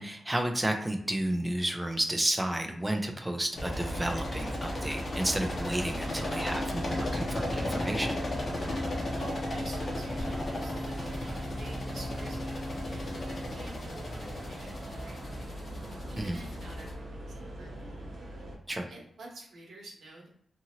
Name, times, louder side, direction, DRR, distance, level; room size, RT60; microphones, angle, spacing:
voice 1, 0.0-8.2 16.2-16.4 18.7-18.9, right 1 dB, 10° right, 4 dB, 0.4 m, -32 dB
sound 1, 3.5-16.9, left 1 dB, 45° left, 0.8 m, -35 dB
sound 2, 3.8-18.6, right 1 dB, 55° right, 0.8 m, -42 dB
voice 2, 9.2-15.6 16.1-17.3 17.6-18.0 18.9-20.3, right 2 dB, 80° right, -3 dB, 0.9 m, -48 dB
2.8 x 2.5 x 2.8 m, 0.66 s
wide cardioid pair, 130°, 0 cm